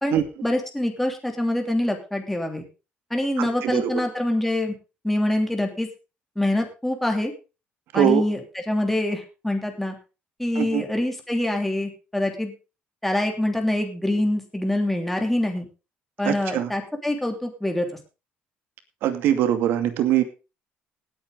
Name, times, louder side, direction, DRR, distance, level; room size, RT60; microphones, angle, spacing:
voice 1, 0.0-2.6 3.1-4.7 5.0-5.9 6.4-7.3 7.9-8.4 8.7-9.9 10.4-12.5 13.0-15.7 16.2-17.9, left 1 dB, 5° left, 3 dB, 3.0 m, -25 dB
voice 2, 3.4-3.9 7.9-8.2 10.6-10.8 16.3-16.7 19.0-20.2, right 11 dB, 75° right, 9 dB, 2.4 m, -22 dB
18.5 x 8.9 x 3.9 m, 0.31 s
cardioid pair, 140°, 4 cm